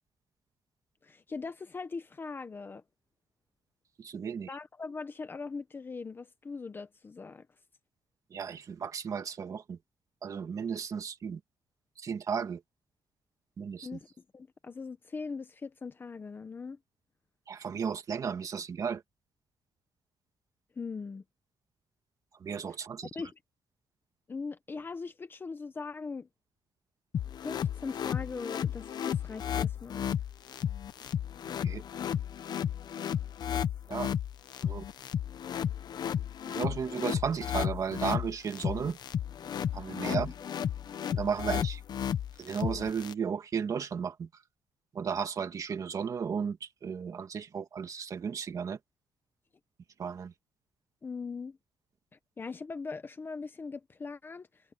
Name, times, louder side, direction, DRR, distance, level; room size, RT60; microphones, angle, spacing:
voice 1, 1.0-2.8 4.5-7.5 13.8-14.1 14.3-16.8 20.8-21.2 23.1-23.3 24.3-26.3 27.4-30.1 40.1-40.3 51.0-51.6 52.4-54.5, left 4 dB, 25° left, 1.0 m, -40 dB
voice 2, 4.0-4.6 8.3-9.8 10.2-11.4 12.0-12.6 13.6-14.0 17.5-19.0 22.4-23.1 31.6-31.8 33.9-34.1 34.6-34.8 36.5-39.0 39.7-40.3 41.1-41.8 42.4-44.3 44.9-48.8 50.0-50.3, right 6 dB, 40° right, 2.0 m, -34 dB
sound 1, 27.1-43.1, left 9 dB, 50° left, 0.9 m, -33 dB
cardioid pair, 170°, 9 cm